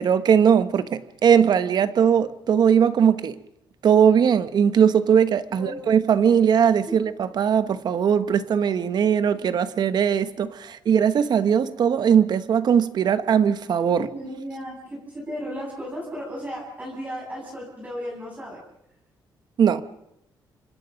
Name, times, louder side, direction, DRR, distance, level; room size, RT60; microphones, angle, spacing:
voice 1, 0.0-3.4 3.8-14.1 19.6-19.8, right 8 dB, 60° right, 1.3 m, -20 dB
voice 2, 13.9-18.6, equal, 20° right, 7.7 m, -35 dB
29.5 x 25.5 x 5.3 m
cardioid pair, 115°, 8 cm